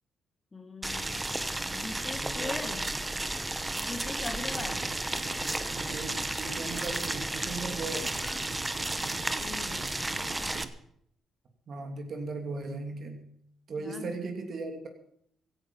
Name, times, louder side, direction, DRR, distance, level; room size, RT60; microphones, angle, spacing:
voice 1, 0.5-1.4 1.7-2.9 3.8-4.8 9.4-10.6 13.8-14.1, left 3 dB, 30° left, 7 dB, 1.9 m, -41 dB
Boiling, 0.8-10.6, right 2 dB, 15° right, 1.0 m, -33 dB
voice 2, 2.2-3.0 4.4-4.6 5.8-8.2 11.7-13.3 13.7-14.9, right 3 dB, 55° right, 4 dB, 2.7 m, -38 dB
sound 1, 4.3-10.7, right 7 dB, 75° right, 1.4 m, -46 dB
sound 2, 8.2-9.3, left 6 dB, 60° left, 1.8 m, -53 dB
16.0 x 11.5 x 5.4 m, 0.69 s
cardioid pair, 90°, 0 cm